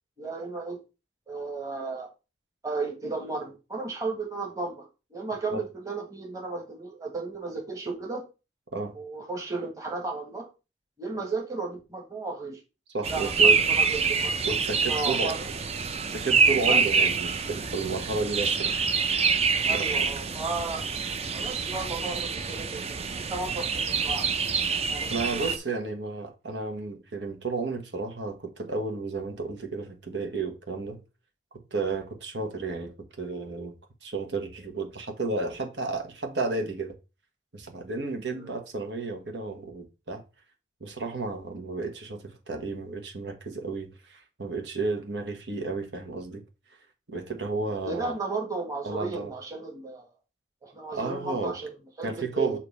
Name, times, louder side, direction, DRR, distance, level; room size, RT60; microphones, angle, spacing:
voice 1, 0.2-0.8 1.3-2.1 2.6-8.2 8.9-10.5 11.0-12.6 13.1-14.4 14.9-15.5 16.7-16.8 19.6-20.8 21.3-24.3 24.9-25.5 38.3-38.5 47.8-50.1 50.6-52.6, right 3 dB, 20° right, 1.5 m, -34 dB
voice 2, 12.9-13.6 14.4-15.5 16.1-18.8 19.7-20.1 25.1-31.0 31.7-32.9 33.2-33.7 34.0-36.9 37.5-40.2 40.8-46.4 47.1-48.1 48.8-49.3 50.9-51.6 52.0-52.6, right 3 dB, 90° right, 1.3 m, -32 dB
sound 1, 13.0-25.6, right 5 dB, 35° right, 0.5 m, -26 dB
6.7 x 2.9 x 5.4 m
head